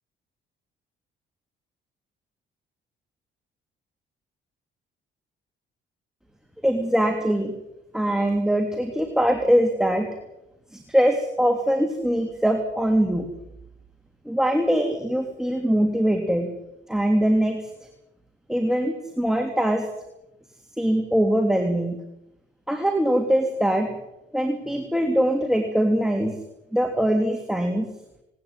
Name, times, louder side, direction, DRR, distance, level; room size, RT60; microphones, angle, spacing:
voice 1, 6.6-7.5 7.9-10.1 10.7-13.2 14.2-16.5 16.9-17.6 18.5-19.9 20.8-21.9 22.7-23.9 24.3-26.3 26.7-27.9, equal, ahead, 4 dB, 3.2 m, -22 dB
20.0 x 19.5 x 9.1 m, 0.89 s
cardioid pair, 90°, 20 cm